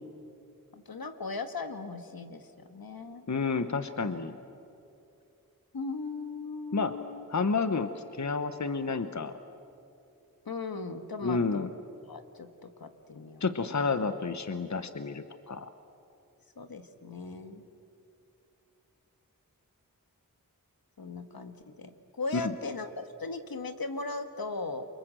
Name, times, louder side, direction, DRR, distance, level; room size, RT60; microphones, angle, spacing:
voice 1, 0.7-2.4 2.7-3.3 5.7-7.2 10.4-11.7 12.1-13.4 16.6-17.6 21.0-22.9 23.2-24.8, left 3 dB, 75° left, 8 dB, 1.6 m, -38 dB
voice 2, 3.3-4.4 6.7-7.0 7.3-9.3 11.2-11.7 13.4-15.7 22.3-22.5, left 4 dB, 50° left, 10 dB, 1.1 m, -30 dB
28.5 x 24.5 x 7.7 m, 2.7 s
wide cardioid pair, 45°, 36 cm